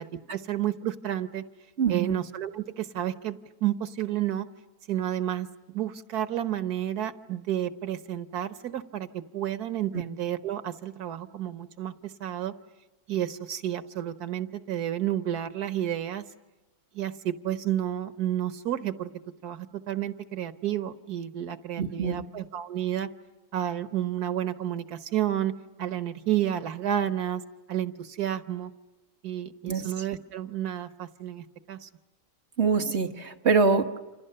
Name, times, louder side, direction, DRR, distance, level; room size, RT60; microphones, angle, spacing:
voice 1, 0.0-1.4 1.9-4.5 4.9-12.5 13.1-16.2 16.9-19.1 19.4-23.1 23.5-25.5 25.8-27.4 27.7-28.7 29.2-31.9, right 11 dB, 90° right, 11 dB, 1.6 m, -31 dB
voice 2, 1.8-2.1 21.8-22.2 29.7-29.8 32.6-34.0, right 4 dB, 45° right, 5 dB, 1.7 m, -24 dB
29.5 x 27.0 x 6.7 m, 1.2 s
omnidirectional pair, 1.6 m